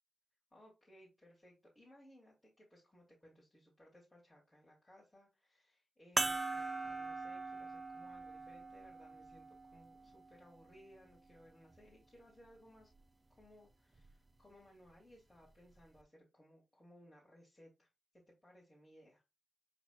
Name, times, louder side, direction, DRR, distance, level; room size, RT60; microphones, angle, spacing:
voice 1, 0.5-12.9 13.3-17.9 18.4-19.2, equal, 20° left, -6 dB, 2.5 m, -62 dB
sound 1, 6.2-11.0 11.7-11.8 14.0-14.1, right 3 dB, 30° right, 0.6 m, -41 dB
5.9 x 4.0 x 2.2 m, 0.24 s
cardioid pair, 50°, 0 cm